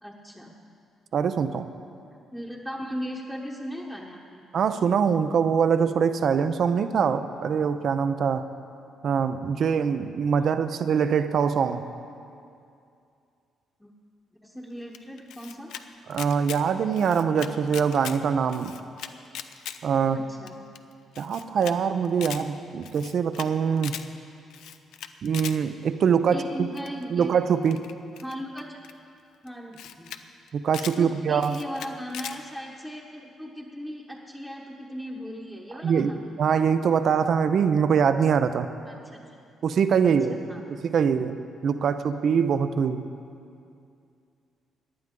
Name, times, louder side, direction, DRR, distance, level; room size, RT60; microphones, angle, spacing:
voice 1, 0.0-0.6 2.3-4.4 13.8-13.9 14.4-15.7 20.1-20.5 26.3-27.3 28.2-28.8 29.4-30.1 31.0-36.2 38.9-39.2 40.0-40.7, equal, 5° left, -4 dB, 1.1 m, -37 dB
voice 2, 1.1-1.6 4.5-8.5 9.0-11.8 16.1-18.7 19.8-20.2 21.2-23.9 25.2-26.7 27.1-27.8 30.5-31.6 35.8-36.1 36.4-38.7 39.6-40.4 40.7-41.4 41.6-43.0, right 7 dB, 60° right, 11 dB, 0.6 m, -23 dB
Camera, 14.9-15.8 16.1-16.6 16.9-18.2 18.5-19.8 20.1-20.2 20.5-20.6 20.8-20.9 21.2-21.7 22.0-22.4 22.8-23.5 23.8-24.1 24.5-25.6 26.8-27.0 27.7-28.9 29.5-29.6 29.7-30.2 30.5-31.0 31.4-32.4, left 10 dB, 85° left, 0.5 m, -39 dB
17.5 x 10.5 x 3.8 m, 2.5 s
cardioid pair, 90°, 0 cm